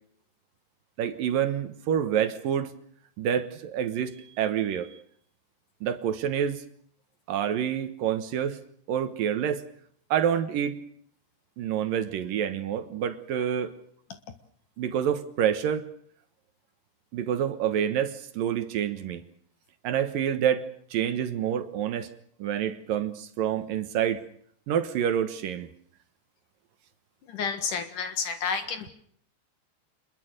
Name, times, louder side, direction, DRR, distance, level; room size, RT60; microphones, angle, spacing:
voice 1, 1.0-2.7 3.2-5.0 5.8-6.6 7.3-8.6 8.9-9.6 10.1-10.8 11.6-13.8 14.8-15.9 17.1-19.2 19.8-22.1 22.4-24.2 24.7-25.7, right 9 dB, 65° right, 11 dB, 2.7 m, -27 dB
voice 2, 27.3-28.9, left 6 dB, 60° left, 10 dB, 2.8 m, -30 dB
27.0 x 22.0 x 6.6 m, 0.62 s
omnidirectional pair, 4.9 m